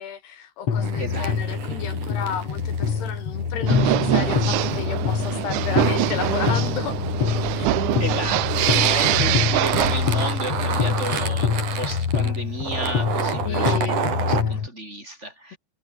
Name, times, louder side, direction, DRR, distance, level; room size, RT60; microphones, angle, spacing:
voice 1, 0.0-7.0 7.5-7.7 13.4-14.6, left 9 dB, 60° left, 4.1 m, -33 dB
sound 1, 0.7-14.7, left 6 dB, 40° left, 3.0 m, -25 dB
sound 2, 0.8-14.4, right 7 dB, 45° right, 3.8 m, -30 dB
voice 2, 1.0-1.3 7.8-15.6, right 1 dB, 15° right, 6.4 m, -33 dB
sound 3, 3.7-10.5, right 17 dB, 75° right, 3.1 m, -24 dB
omnidirectional pair, 5.9 m